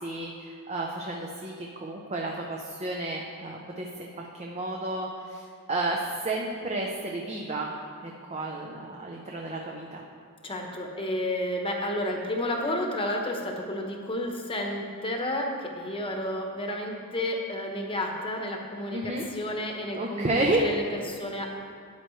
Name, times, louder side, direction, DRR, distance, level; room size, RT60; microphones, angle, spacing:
voice 1, 0.0-5.4 5.7-7.7 8.0-10.0 18.9-19.3 19.9-20.7, right 2 dB, 30° right, -1 dB, 0.7 m, -31 dB
voice 2, 10.4-21.5, left 1 dB, 25° left, 1 dB, 1.1 m, -31 dB
12.5 x 9.1 x 3.2 m, 2.3 s
head